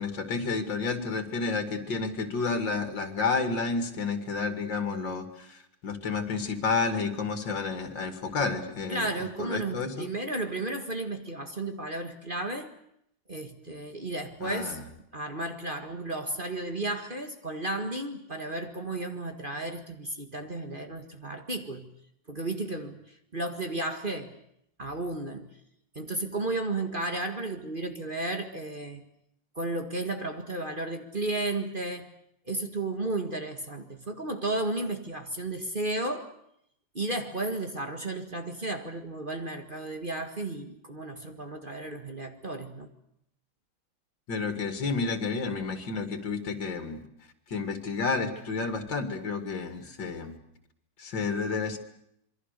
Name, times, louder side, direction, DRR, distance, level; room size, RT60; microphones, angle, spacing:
voice 1, 0.0-9.1 9.4-10.1 14.4-14.8 44.3-47.0 47.5-50.3 51.0-51.8, left 4 dB, 75° left, 7 dB, 3.0 m, -30 dB
voice 2, 8.9-12.7 13.3-14.8 15.1-21.9 22.3-23.0 23.3-24.4 24.8-25.5 26.0-29.0 29.6-32.1 32.5-36.3 36.9-42.9, right 2 dB, 25° right, 5 dB, 1.9 m, -33 dB
27.5 x 23.0 x 6.8 m, 0.74 s
omnidirectional pair, 2.0 m